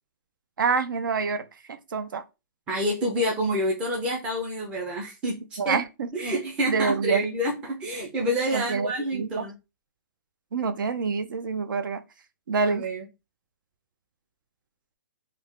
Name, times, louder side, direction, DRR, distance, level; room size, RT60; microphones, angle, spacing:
voice 1, 0.6-2.2 5.6-6.1 6.7-7.3 8.5-9.5 10.5-12.0 12.5-12.9, right 5 dB, 75° right, 0.6 m, -27 dB
voice 2, 2.7-5.8 6.1-9.5 12.6-13.0, equal, 10° right, 0.5 m, -28 dB
3.3 x 2.3 x 3.5 m
hypercardioid pair, 165°, 11 cm